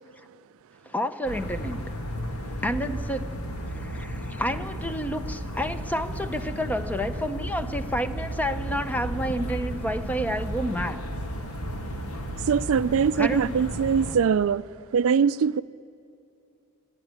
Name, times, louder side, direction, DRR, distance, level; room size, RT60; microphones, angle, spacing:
voice 1, 0.9-1.8 2.6-3.3 3.7-11.0 13.2-13.6, equal, 5° left, 0.7 m, -30 dB
sound 1, 1.2-14.2, equal, 80° left, 2.1 m, -34 dB
voice 2, 12.5-14.6 14.9-15.6, right 6 dB, 65° right, 0.4 m, -22 dB
26.0 x 10.5 x 9.9 m
head